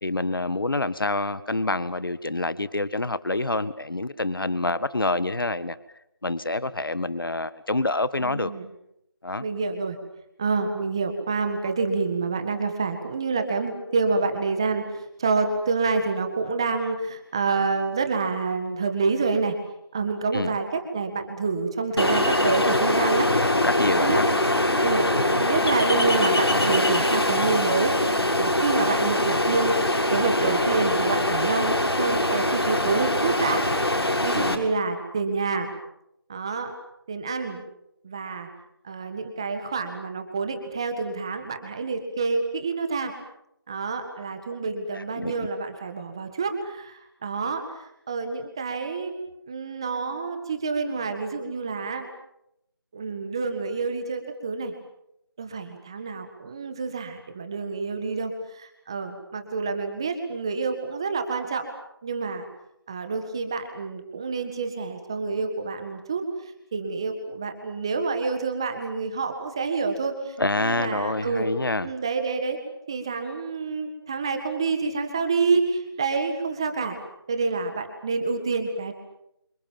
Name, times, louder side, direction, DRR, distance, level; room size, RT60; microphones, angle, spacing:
voice 1, 0.0-5.8 6.2-8.5 9.2-9.5 20.3-20.5 23.3-24.3 34.3-34.6 44.9-45.5 70.4-71.9, left 2 dB, 60° left, 15 dB, 1.7 m, -27 dB
voice 2, 8.2-8.7 9.4-10.0 10.4-14.9 15.2-19.6 19.9-23.3 24.0-24.2 24.8-25.1 25.4-27.9 28.4-29.7 30.1-33.7 34.2-35.7 36.3-36.7 37.1-37.6 38.0-38.5 38.8-43.1 43.7-47.6 48.1-49.1 49.5-52.1 52.9-54.7 55.4-61.7 62.0-62.4 62.9-66.2 66.7-71.5 71.8-72.6 72.9-77.0 77.3-78.9, right 4 dB, 10° right, 7 dB, 1.7 m, -27 dB
Ocean, 22.0-34.5, left 1 dB, 85° left, 6.5 m, -23 dB
29.5 x 26.5 x 7.4 m, 0.81 s
figure-of-eight pair, 175°, 13 cm